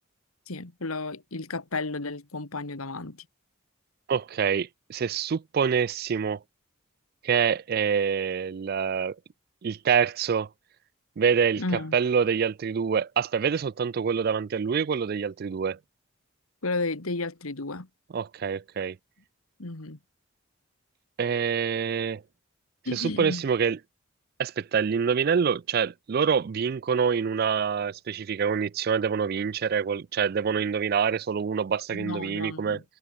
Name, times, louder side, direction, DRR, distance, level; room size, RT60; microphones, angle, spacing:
voice 1, 0.5-3.3 11.6-12.0 16.6-17.9 19.6-20.0 22.9-23.4 31.9-32.8, left 3 dB, 85° left, 1.9 m, -33 dB
voice 2, 4.1-6.4 7.2-9.2 9.6-10.5 11.2-11.6 11.9-15.8 18.1-19.0 21.2-22.2 22.9-23.8 24.4-32.8, right 6 dB, 45° right, 0.3 m, -26 dB
head